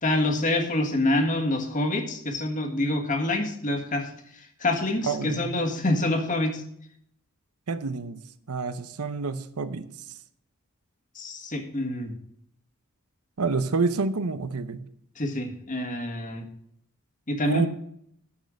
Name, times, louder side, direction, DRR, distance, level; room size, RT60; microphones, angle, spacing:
voice 1, 0.0-4.1 4.6-6.6 11.1-12.1 15.2-16.4 17.3-17.7, left 1 dB, 35° left, 3 dB, 1.5 m, -26 dB
voice 2, 5.0-5.5 7.7-8.2 8.5-9.9 13.4-14.8 17.4-17.7, right 4 dB, 85° right, 13 dB, 0.7 m, -28 dB
9.9 x 6.5 x 6.4 m, 0.70 s
head